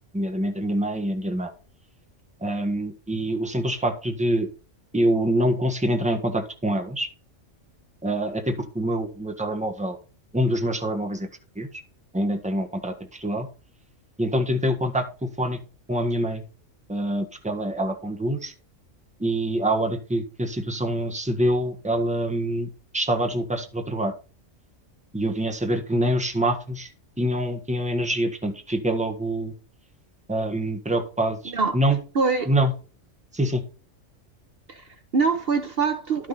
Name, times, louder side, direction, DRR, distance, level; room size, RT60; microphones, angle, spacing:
voice 1, 0.1-1.5 2.4-4.5 4.9-7.1 8.0-10.0 10.3-11.3 11.6-11.7 12.1-12.9 13.2-13.5 14.2-15.6 15.9-16.4 16.9-18.5 19.2-24.1 25.1-26.9 27.2-29.5 30.3-32.0 32.5-32.7 33.3-33.6, right 1 dB, 5° right, 1.3 m, -25 dB
voice 2, 32.1-32.5 34.7-36.3, right 4 dB, 50° right, 1.1 m, -24 dB
11.5 x 6.3 x 4.0 m
omnidirectional pair, 1.3 m